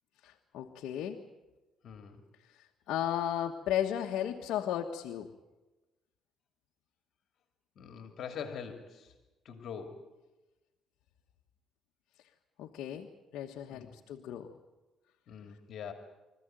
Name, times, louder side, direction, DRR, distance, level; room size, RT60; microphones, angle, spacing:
voice 1, 0.2-1.2 2.9-5.3 12.6-14.5, left 10 dB, 80° left, 2 dB, 1.4 m, -35 dB
voice 2, 1.8-2.2 7.8-9.1 9.4-10.0 13.7-13.9 15.3-15.9, left 7 dB, 60° left, 5 dB, 2.6 m, -43 dB
25.5 x 15.0 x 9.1 m, 1.1 s
cardioid pair, 90°, 0 cm